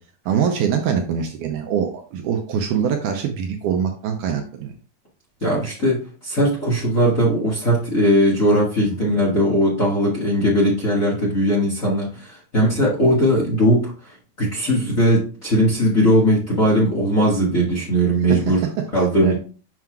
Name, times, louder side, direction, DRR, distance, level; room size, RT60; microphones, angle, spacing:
voice 1, 0.3-4.7 5.5-5.6 8.9-9.1 19.2-19.3, right 7 dB, 80° right, 4 dB, 2.0 m, -23 dB
voice 2, 5.4-13.9 14.4-18.6 18.9-19.3, equal, 35° left, -4 dB, 1.3 m, -19 dB
7.5 x 5.6 x 2.4 m, 0.39 s
omnidirectional pair, 4.1 m